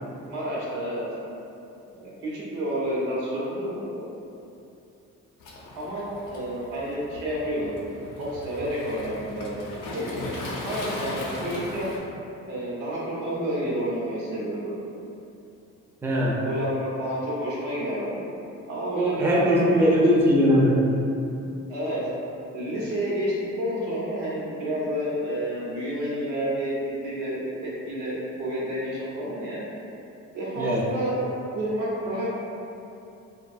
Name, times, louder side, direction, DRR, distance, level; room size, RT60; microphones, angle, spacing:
voice 1, 0.3-1.0 2.0-4.1 5.7-7.7 8.2-9.6 9.9-10.2 10.6-12.0 12.5-14.8 16.4-18.2 18.7-20.2 21.7-22.1 22.5-26.7 27.0-29.6 30.3-31.3 31.5-32.3, right 1 dB, 90° right, -7 dB, 0.8 m, -29 dB
Waves surf, 5.4-12.0, left 1 dB, 85° left, 0.5 m, -37 dB
voice 2, 16.0-16.4 18.9-20.8 30.6-30.9, equal, 10° right, -4 dB, 0.3 m, -20 dB
2.6 x 2.2 x 2.4 m, 2.7 s
cardioid pair, 90°, 30 cm